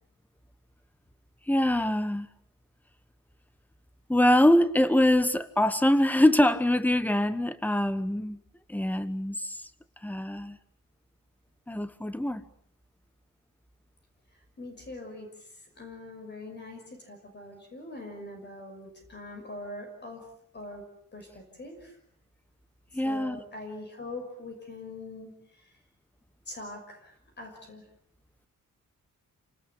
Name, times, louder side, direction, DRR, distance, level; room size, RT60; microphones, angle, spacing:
voice 1, 1.5-2.3 4.1-8.4 8.7-9.6 10.0-10.6 11.7-12.4 22.9-23.4, left 1 dB, 5° left, 1.1 m, -24 dB
voice 2, 14.3-20.2 20.5-20.8 21.1-22.0 22.9-25.7 26.5-27.8, left 2 dB, 30° left, 5.8 m, -43 dB
29.5 x 19.5 x 8.6 m
wide cardioid pair, 175°, 34 cm